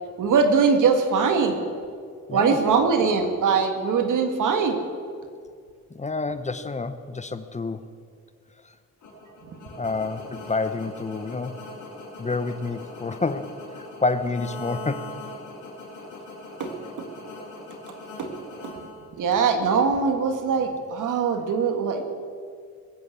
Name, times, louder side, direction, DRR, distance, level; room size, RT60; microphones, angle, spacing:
voice 1, 0.2-1.6 2.3-4.8 16.6-16.7 17.0-17.1 18.2-18.3 19.2-22.0, right 5 dB, 85° right, 6 dB, 1.9 m, -22 dB
voice 2, 5.9-7.9 9.8-11.5 12.2-15.1, left 3 dB, 25° left, 11 dB, 0.8 m, -28 dB
sound 1, 9.0-19.5, left 1 dB, 75° left, 5.0 m, -41 dB
20.0 x 8.6 x 8.1 m, 2.2 s
cardioid pair, 105°, 30 cm